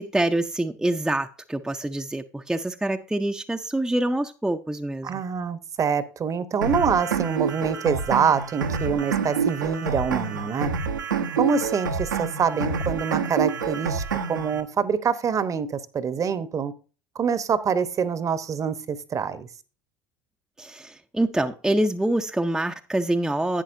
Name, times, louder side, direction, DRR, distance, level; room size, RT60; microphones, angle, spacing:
voice 1, 0.0-5.2 20.6-23.6, right 1 dB, 5° right, 0.7 m, -26 dB
voice 2, 5.0-10.7 11.4-14.0 14.3-16.7 17.1-19.5, right 6 dB, 35° right, 0.9 m, -25 dB
sound 1, 6.6-14.6, right 5 dB, 85° right, 1.0 m, -27 dB
11.0 x 9.0 x 2.6 m
figure-of-eight pair, 65°, 10 cm